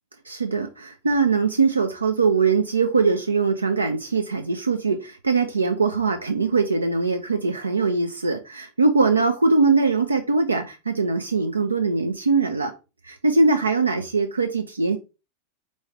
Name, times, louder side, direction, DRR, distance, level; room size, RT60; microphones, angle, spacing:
voice 1, 0.3-12.7 13.0-15.0, right 4 dB, 80° right, 0.4 m, -22 dB
4.2 x 3.1 x 2.7 m
figure-of-eight pair, 90°, 0 cm